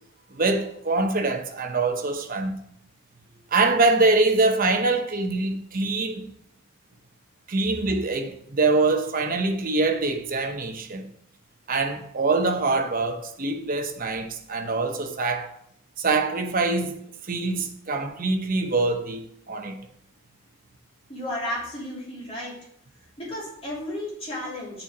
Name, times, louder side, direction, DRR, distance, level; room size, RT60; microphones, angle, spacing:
voice 1, 0.3-2.6 3.5-6.2 7.5-11.0 11.7-15.5 16.0-19.2 19.5-19.8, right 3 dB, 40° right, 0.8 m, -24 dB
voice 2, 21.1-22.5 23.2-24.8, left 1 dB, 30° left, 3.1 m, -33 dB
6.9 x 4.4 x 6.0 m
head